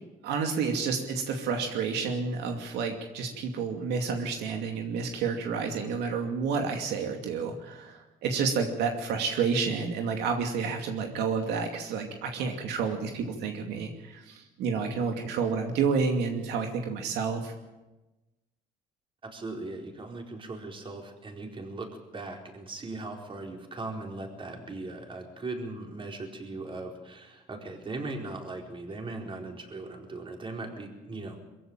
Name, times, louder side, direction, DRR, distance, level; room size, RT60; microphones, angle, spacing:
voice 1, 0.2-17.5, right 5 dB, 80° right, 3 dB, 2.6 m, -30 dB
voice 2, 19.2-31.4, right 2 dB, 30° right, 2 dB, 4.5 m, -39 dB
22.5 x 15.5 x 9.0 m, 1.1 s
cardioid pair, 110°, 17 cm